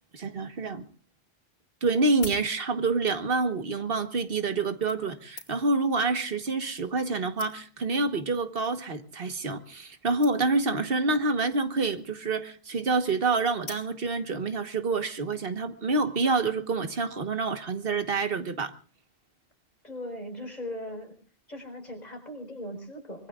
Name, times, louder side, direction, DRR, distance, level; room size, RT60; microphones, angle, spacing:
voice 1, 0.1-0.8 1.8-18.7, right 3 dB, 65° right, 9 dB, 1.5 m, -27 dB
sound 1, 2.1-3.0 3.9-4.1 4.9-5.8 6.7-6.8 7.0-7.1 7.4-7.9 8.6-8.8 9.1-9.2 9.4-9.5 9.7-9.9 10.2-10.7 11.7-12.2 13.6-14.3 14.8-14.9, left 2 dB, 85° left, 3.5 m, -46 dB
voice 2, 19.8-21.2 21.5-23.3, left 1 dB, 40° left, 4 dB, 4.7 m, -39 dB
25.0 x 22.0 x 2.4 m, 0.38 s
omnidirectional pair, 1.1 m